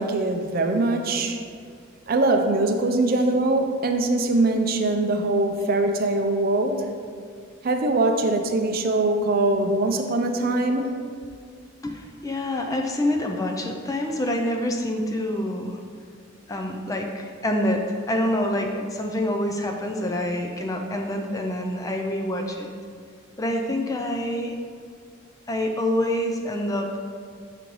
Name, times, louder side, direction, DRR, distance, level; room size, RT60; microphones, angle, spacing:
voice 1, 0.0-1.4 2.1-6.9 7.6-11.0, right 2 dB, 45° right, 5 dB, 0.4 m, -22 dB
voice 2, 11.8-15.8 16.5-22.7 23.4-24.5 25.5-27.0, left 1 dB, 15° left, 3 dB, 0.3 m, -26 dB
5.8 x 3.1 x 5.2 m, 2.1 s
head